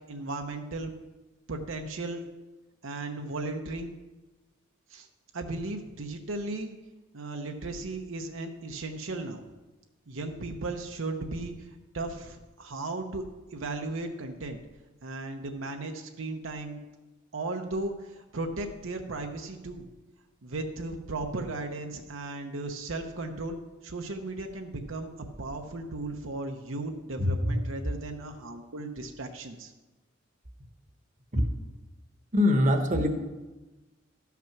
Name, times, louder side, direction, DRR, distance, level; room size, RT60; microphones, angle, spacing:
voice 1, 0.1-0.9 1.5-2.2 2.8-3.9 4.9-5.1 5.3-6.8 7.1-9.4 10.1-11.7 11.9-13.2 13.5-14.6 15.0-16.8 17.3-19.9 20.4-25.1 25.4-29.7, right 2 dB, 70° right, 4 dB, 0.9 m, -36 dB
voice 2, 27.2-27.6 31.3-31.5 32.3-33.1, left 1 dB, 40° right, 5 dB, 1.1 m, -23 dB
13.0 x 5.9 x 5.9 m, 1.1 s
head